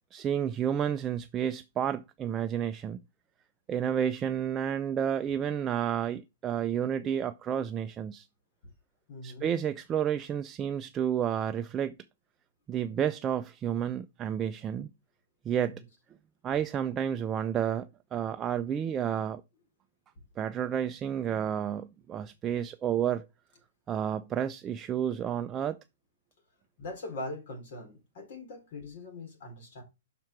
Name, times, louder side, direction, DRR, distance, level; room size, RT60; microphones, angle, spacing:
voice 1, 0.1-3.0 3.7-8.3 9.2-12.0 12.7-14.9 15.5-15.8 16.4-19.4 20.4-23.3 23.9-25.8, right 9 dB, 20° right, 0.4 m, -31 dB
voice 2, 3.8-4.1 9.1-9.5 15.7-15.8 26.8-29.8, left 2 dB, 55° left, 3.6 m, -42 dB
5.9 x 4.5 x 5.8 m
hypercardioid pair, 135°, 0 cm